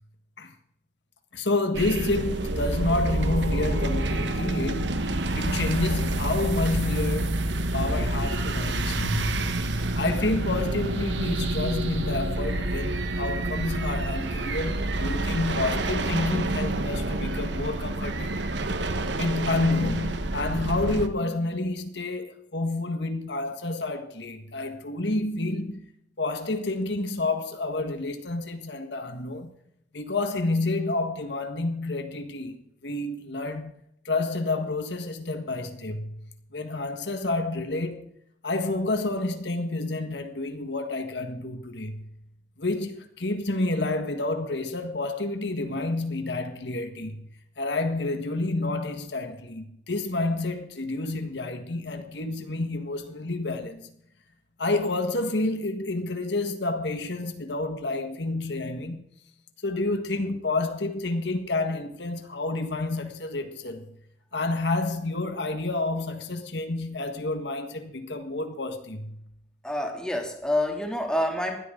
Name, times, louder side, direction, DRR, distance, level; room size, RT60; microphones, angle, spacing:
voice 1, 1.3-7.5 7.7-9.6 10.0-18.5 19.2-25.9 26.2-29.5 29.9-33.7 34.0-38.1 38.4-42.1 42.6-47.2 47.6-53.9 54.6-59.1 59.6-63.9 64.3-69.2, left 2 dB, 75° left, 1.6 m, -29 dB
sound 1, 1.7-21.1, right 2 dB, 85° right, 1.3 m, -28 dB
voice 2, 69.6-71.6, left 1 dB, 5° left, 2.8 m, -27 dB
19.5 x 13.0 x 3.9 m
head